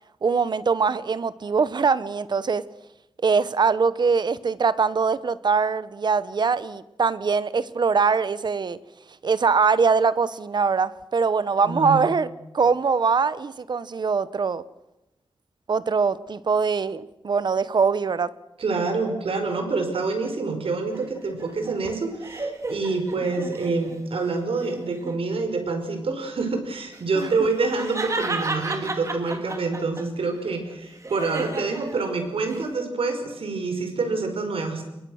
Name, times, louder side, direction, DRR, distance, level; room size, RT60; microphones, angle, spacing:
voice 1, 0.2-2.6 3.2-8.8 9.2-12.3 12.5-14.6 15.7-18.3 27.2-27.3, right 5 dB, 50° right, 16 dB, 1.0 m, -22 dB
voice 2, 11.6-12.0 18.6-34.8, right 3 dB, 85° right, 6 dB, 5.1 m, -27 dB
sound 1, 20.9-24.0 24.5-25.2 26.9-30.0 30.4-32.7, right 2 dB, 35° right, 2.4 m, -33 dB
29.5 x 22.5 x 6.5 m, 0.93 s
wide cardioid pair, 155°, 9 cm